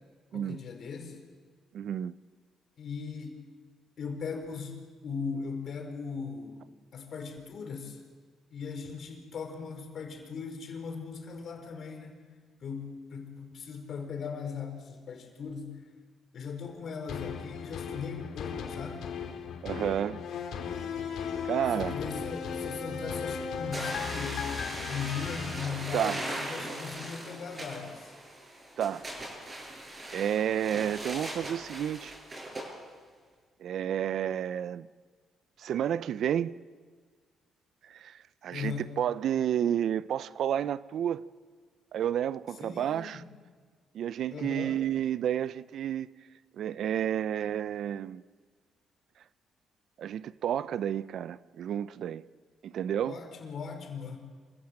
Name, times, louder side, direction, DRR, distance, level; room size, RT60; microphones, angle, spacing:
voice 1, 0.3-1.2 2.8-3.4 4.0-4.8 5.0-6.6 6.9-8.0 8.5-12.2 12.6-15.8 16.3-19.1 21.7-24.4 24.9-28.1 38.5-38.9 42.6-43.2 44.3-44.9 53.0-54.2, left 5 dB, 60° left, 4.5 m, -39 dB
voice 2, 1.7-2.2 19.6-20.2 21.4-22.0 25.9-26.2 28.8-29.0 30.1-32.1 33.6-34.9 35.6-36.6 37.8-41.2 41.9-43.2 43.9-46.1 46.5-48.2 50.0-52.2 52.6-53.2, right 10 dB, 70° right, 0.6 m, -31 dB
sound 1, 17.1-26.5 26.9-27.0, left 6 dB, 75° left, 2.9 m, -37 dB
sound 2, 23.7-32.7, right 1 dB, 30° right, 8.0 m, -39 dB
26.5 x 16.0 x 7.8 m
cardioid pair, 90°, 0 cm